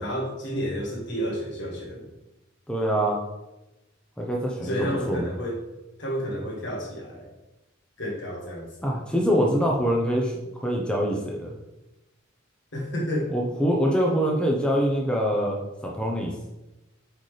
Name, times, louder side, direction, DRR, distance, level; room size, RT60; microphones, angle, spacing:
voice 1, 0.0-2.1 4.6-5.6 6.0-7.3 8.0-9.0 12.7-13.3, equal, 65° left, -2 dB, 1.7 m, -31 dB
voice 2, 2.7-3.2 4.2-5.3 8.8-11.5 13.3-16.3, equal, 5° left, -1 dB, 0.7 m, -24 dB
8.1 x 3.9 x 3.3 m, 0.98 s
head